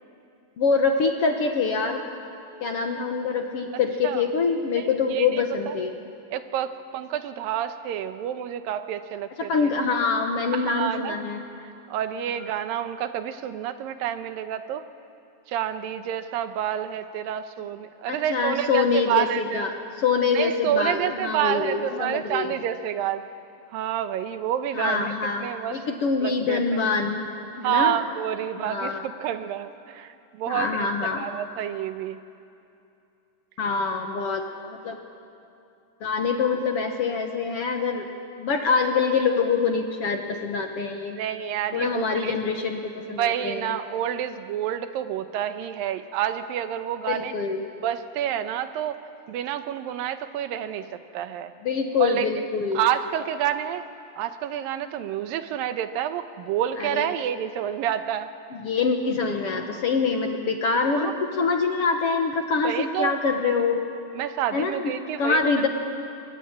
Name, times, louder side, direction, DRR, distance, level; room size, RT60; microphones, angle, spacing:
voice 1, 0.6-2.0 2.6-5.9 9.5-11.4 18.1-22.5 24.7-28.0 28.6-29.0 30.5-31.3 33.6-35.0 36.0-38.1 38.4-41.2 41.7-43.7 47.1-47.6 51.6-52.8 56.8-57.1 58.6-63.8 64.5-65.7, left 5 dB, 55° left, 4 dB, 1.8 m, -25 dB
voice 2, 4.7-5.8 6.3-9.7 10.5-11.2 11.9-14.9 15.5-19.7 20.3-23.2 23.7-25.1 25.4-25.8 26.2-26.6 27.6-32.2 41.2-42.4 43.2-47.3 47.8-49.0 49.3-51.5 52.0-52.3 52.7-53.8 54.2-58.3 61.0-61.1 62.6-63.2 64.1-65.4, right 10 dB, 85° right, 10 dB, 2.7 m, -28 dB
23.5 x 20.5 x 9.7 m, 2.6 s
omnidirectional pair, 4.0 m